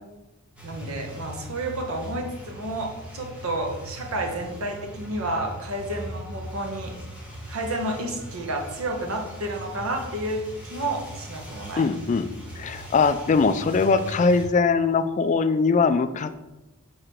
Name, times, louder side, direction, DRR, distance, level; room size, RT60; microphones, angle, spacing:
sound 1, 0.6-14.5, equal, 5° right, 1.1 m, -40 dB
voice 1, 0.6-6.9 7.5-10.4 10.7-11.8, right 1 dB, 70° right, 2 dB, 1.1 m, -30 dB
voice 2, 11.8-12.3 12.6-16.3, left 4 dB, 35° left, 12 dB, 0.3 m, -21 dB
6.5 x 3.8 x 4.4 m, 1.0 s
head